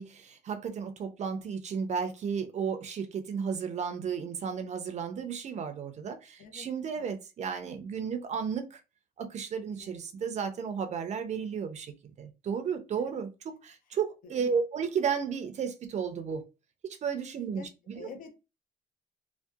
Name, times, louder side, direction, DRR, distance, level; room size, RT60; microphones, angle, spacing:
voice 1, 0.0-8.8 9.2-16.4 16.8-18.1, right 6 dB, 45° right, 0.5 m, -33 dB
voice 2, 17.9-18.4, left 5 dB, 55° left, 0.6 m, -47 dB
2.7 x 2.1 x 2.3 m
cardioid pair, 110°, 17 cm